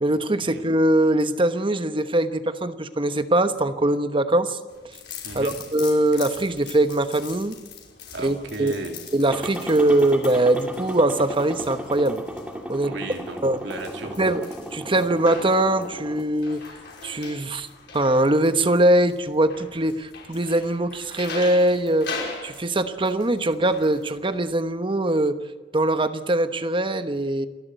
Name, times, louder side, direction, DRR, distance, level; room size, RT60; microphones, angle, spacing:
voice 1, 0.0-4.6 5.3-7.5 8.2-8.7 9.1-12.2 12.7-12.9 13.4-13.6 14.2-14.4 14.7-16.6 17.0-17.7 17.9-22.1 22.4-25.4 25.7-27.5, right 1 dB, 30° right, 10 dB, 1.1 m, -22 dB
sound 1, 4.7-24.6, left 5 dB, 65° left, 5.5 m, -41 dB
voice 2, 5.2-5.5 8.1-9.0 12.8-14.4, right 2 dB, 75° right, 3 dB, 3.3 m, -35 dB
sound 2, 9.2-16.2, equal, 10° right, 2.5 m, -35 dB
27.5 x 12.0 x 8.1 m, 1.3 s
head